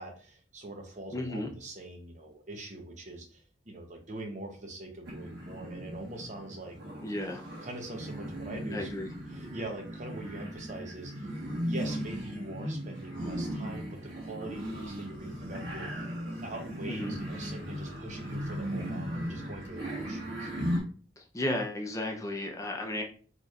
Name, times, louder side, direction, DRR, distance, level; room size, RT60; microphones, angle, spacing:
voice 1, 0.0-6.8 7.6-8.9 9.3-11.3 11.6-15.9 16.4-20.5, right 2 dB, 45° right, 3 dB, 0.9 m, -43 dB
voice 2, 1.1-1.5 7.0-7.4 8.7-9.1 16.9-17.2 21.2-23.0, left 1 dB, 20° left, 2 dB, 0.6 m, -34 dB
sound 1, 5.0-20.8, equal, 75° right, 1.5 m, -37 dB
4.3 x 3.2 x 2.5 m, 0.42 s
head